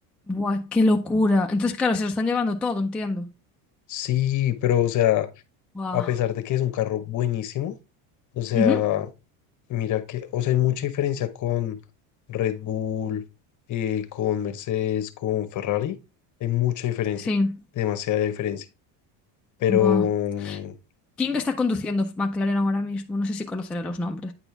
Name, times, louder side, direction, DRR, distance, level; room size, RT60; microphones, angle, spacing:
voice 1, 0.3-3.3 5.7-6.1 8.5-8.8 17.2-17.6 19.7-20.1 20.4-20.6 21.2-24.3, left 2 dB, 5° left, 0.3 m, -24 dB
voice 2, 3.9-5.3 5.9-7.7 8.4-9.1 9.7-11.8 12.3-13.2 13.7-16.0 16.4-17.3 17.8-18.6 19.6-20.7, left 12 dB, 45° left, 1.0 m, -25 dB
8.9 x 4.3 x 3.3 m
cardioid pair, 130°, 43 cm